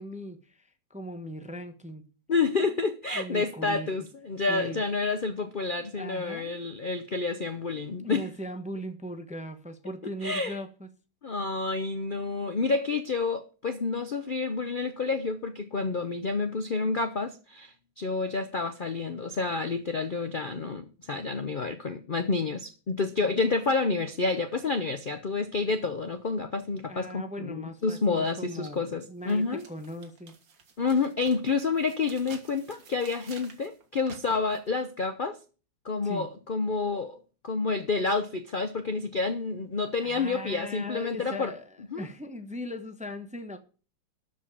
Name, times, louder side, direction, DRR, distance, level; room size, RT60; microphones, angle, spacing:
voice 1, 0.0-2.0 2.6-2.7 3.1-3.9 4.5-4.8 5.8-6.6 8.0-10.9 23.2-23.3 26.9-30.3 36.0-36.3 40.0-43.6, equal, 5° right, 0.6 m, -39 dB
voice 2, 2.3-8.2 10.2-10.6 11.2-29.6 30.8-35.4 35.8-37.2 37.4-41.5 41.9-42.0, left 4 dB, 65° left, 0.5 m, -29 dB
sound 1, 28.7-28.8 29.3-34.7, right 5 dB, 70° right, 2.3 m, -51 dB
13.0 x 5.1 x 8.4 m
omnidirectional pair, 2.1 m